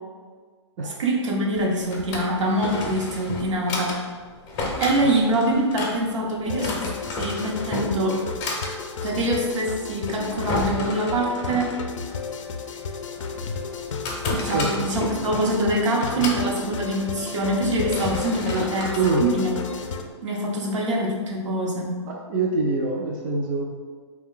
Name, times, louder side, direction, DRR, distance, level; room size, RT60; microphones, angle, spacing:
voice 1, 0.8-4.0 4.8-8.3 9.0-11.7 14.3-18.9 19.2-19.5 20.2-21.9, right 1 dB, 75° right, -2 dB, 0.8 m, -24 dB
Drawer open or close, 1.6-20.1, left 2 dB, 30° left, 0.6 m, -33 dB
sound 1, 6.4-20.0, left 5 dB, 85° left, 0.4 m, -33 dB
voice 2, 22.1-23.6, right 3 dB, 35° right, -1 dB, 0.4 m, -24 dB
2.5 x 2.2 x 3.6 m, 1.5 s
hypercardioid pair, 130°, 16 cm